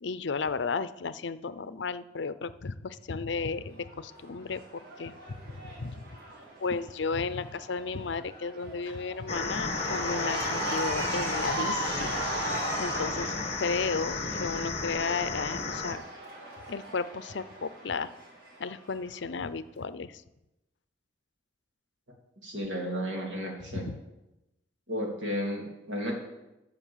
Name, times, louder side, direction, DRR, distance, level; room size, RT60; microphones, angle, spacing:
voice 1, 0.0-6.0 6.6-12.3 12.8-16.0 16.7-18.1 18.6-20.2 23.7-24.0, left 4 dB, 65° left, 14 dB, 0.6 m, -34 dB
Cheering / Crowd, 3.8-19.1, right 2 dB, 60° right, 4.9 m, -38 dB
sound 1, 9.3-15.9, left 3 dB, 35° left, 1.3 m, -33 dB
voice 2, 22.4-23.8 24.9-26.1, equal, 80° right, 0 dB, 3.3 m, -33 dB
13.0 x 6.5 x 7.3 m, 0.95 s
head